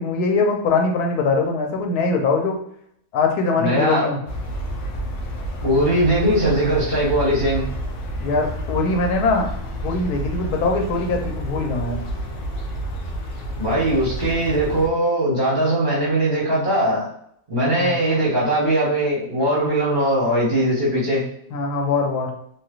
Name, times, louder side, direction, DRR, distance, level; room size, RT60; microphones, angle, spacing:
voice 1, 0.0-2.6 3.1-4.2 8.2-9.5 9.8-12.0 17.8-18.0 21.5-22.3, left 3 dB, 90° left, 2 dB, 1.2 m, -22 dB
voice 2, 3.6-4.1 5.6-7.7 13.6-17.1 17.5-21.2, right 1 dB, 35° right, -7 dB, 1.0 m, -20 dB
sound 1, 4.3-14.9, equal, 65° left, 0.8 m, -30 dB
3.2 x 2.6 x 2.3 m, 0.70 s
omnidirectional pair, 1.6 m